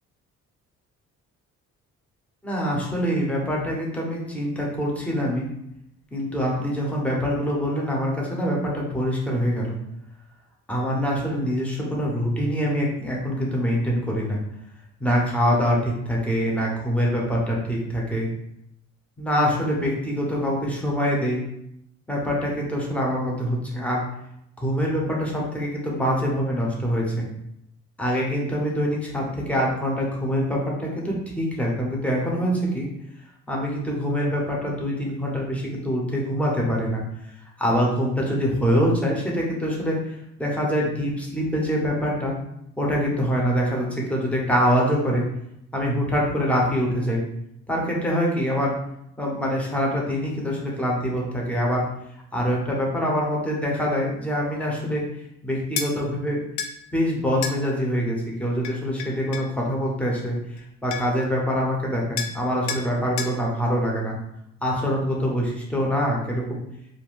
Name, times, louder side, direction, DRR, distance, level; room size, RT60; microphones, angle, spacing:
voice 1, 2.4-5.5 6.1-9.8 10.7-14.4 15.0-18.3 19.2-21.4 22.1-24.0 24.6-27.3 28.0-32.9 33.5-37.0 37.6-42.3 42.8-45.2 45.7-47.2 47.7-48.7 49.2-51.8 52.3-55.0 55.4-56.4 56.9-60.4 60.8-64.2 64.6-66.6, equal, 5° left, -3 dB, 0.9 m, -24 dB
sound 1, 55.8-55.9 56.6-56.7 57.4-57.6 58.6-59.5 60.6-60.7 60.9-61.2 62.2-62.4 62.7-62.9 63.2-63.4, left 6 dB, 75° left, 0.5 m, -30 dB
2.6 x 2.1 x 3.5 m, 0.78 s
cardioid pair, 90°, 30 cm